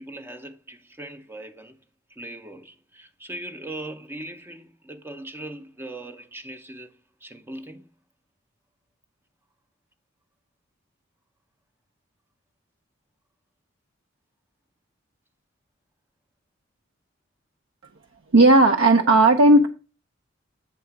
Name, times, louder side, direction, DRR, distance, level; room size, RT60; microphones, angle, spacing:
voice 1, 0.0-1.8 2.1-7.9, right 1 dB, 10° right, 0.5 m, -39 dB
voice 2, 18.3-19.7, right 2 dB, 65° right, 0.6 m, -14 dB
8.0 x 3.7 x 5.7 m
head